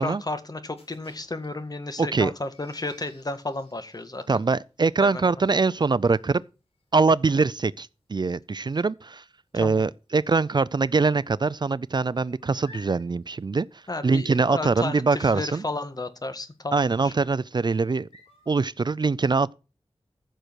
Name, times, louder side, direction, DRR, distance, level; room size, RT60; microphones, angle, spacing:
voice 1, 0.0-4.2 5.0-5.2 9.5-9.8 13.9-17.1, left 2 dB, 40° left, 1.7 m, -33 dB
sound 1, 0.8-10.2 10.5-10.9 11.2-18.6, left 3 dB, 85° left, 5.0 m, -55 dB
voice 2, 2.0-2.3 4.3-6.4 6.9-9.2 9.5-15.6 16.7-18.1 18.5-19.5, right 4 dB, 45° right, 0.4 m, -23 dB
15.0 x 6.6 x 4.6 m
wide cardioid pair, 75°, 10 cm